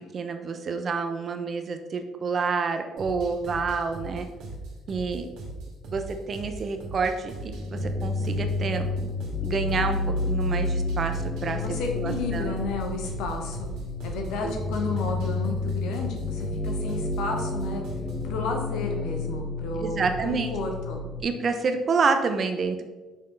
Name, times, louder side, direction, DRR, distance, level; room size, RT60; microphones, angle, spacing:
voice 1, 0.1-4.3 4.9-5.3 5.9-9.1 9.4-10.0 10.3-11.6 12.0-12.5 14.4-14.5 19.8-20.5 21.2-22.8, right 4 dB, 45° right, 7 dB, 0.8 m, -28 dB
sound 1, 3.0-18.3, right 2 dB, 70° right, 2.1 m, -39 dB
sound 2, 7.5-21.2, left 2 dB, 40° left, 1.0 m, -30 dB
voice 2, 11.6-13.7 14.0-17.8 18.2-21.0, left 3 dB, 70° left, 2 dB, 1.2 m, -32 dB
6.0 x 5.3 x 3.9 m, 1.2 s
hypercardioid pair, 60°, 0 cm